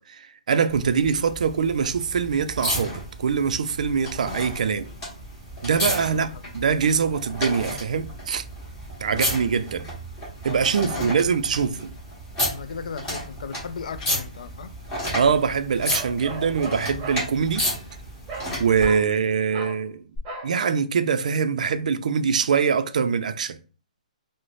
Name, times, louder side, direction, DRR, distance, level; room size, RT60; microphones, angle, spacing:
voice 1, 0.1-4.9 5.6-8.4 9.0-9.9 10.4-11.9 15.1-17.7 18.6-20.0 20.4-23.6, right 6 dB, 65° right, 0.4 m, -23 dB
sound 1, 0.7-18.9 20.2-20.3, equal, 20° left, 1.5 m, -32 dB
voice 2, 5.8-6.4 9.1-9.4 10.5-11.2 12.5-14.8, left 5 dB, 70° left, 0.3 m, -37 dB
Bark, 15.9-17.3 18.3-18.5 18.8-19.1 19.5-19.8 20.2-20.5, right 3 dB, 20° right, 0.7 m, -36 dB
3.8 x 2.0 x 3.1 m
hypercardioid pair, 165°, 4 cm